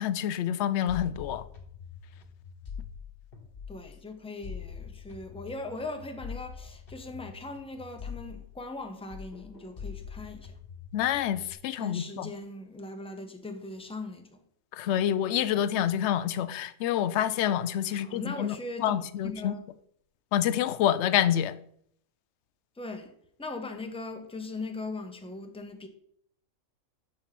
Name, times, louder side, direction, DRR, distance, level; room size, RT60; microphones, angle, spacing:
voice 1, 0.0-1.4 10.9-12.3 14.7-18.5 18.8-19.5 20.3-21.5, left 10 dB, 65° left, 0.7 m, -27 dB
sound 1, 0.9-4.0 4.4-8.8 9.1-11.5, left 6 dB, 45° left, 1.4 m, -44 dB
voice 2, 3.7-10.6 11.7-14.4 17.9-19.6 22.8-23.1 23.4-25.9, left 2 dB, 5° left, 0.6 m, -39 dB
7.3 x 5.2 x 5.8 m
omnidirectional pair, 1.5 m